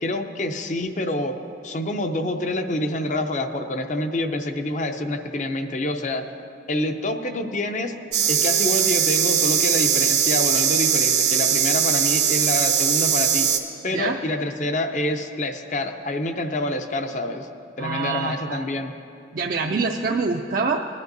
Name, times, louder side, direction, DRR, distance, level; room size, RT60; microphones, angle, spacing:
voice 1, 0.0-1.3 1.6-6.2 6.7-7.9 8.3-13.5 13.8-18.9, left 1 dB, 40° left, 6 dB, 0.5 m, -27 dB
sound 1, 8.1-13.6, right 8 dB, 70° right, 0.9 m, -20 dB
voice 2, 17.8-18.6 19.3-20.8, right 4 dB, 45° right, 1 dB, 0.4 m, -25 dB
19.0 x 10.5 x 2.6 m, 2.7 s
head